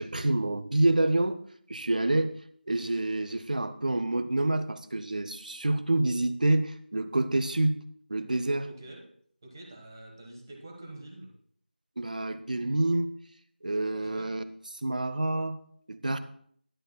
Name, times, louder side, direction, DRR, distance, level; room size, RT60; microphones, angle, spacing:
voice 1, 0.0-1.4 1.7-2.4 2.7-7.8 8.1-8.7 12.0-13.1 13.6-14.4 14.8-15.6 15.9-16.2, right 2 dB, 50° right, 12 dB, 0.7 m, -27 dB
voice 2, 1.9-2.3 8.6-9.0 9.4-11.3 14.0-14.3, right 1 dB, 20° right, 0 dB, 1.2 m, -46 dB
20.5 x 7.8 x 2.3 m, 0.63 s
figure-of-eight pair, 175°, 6 cm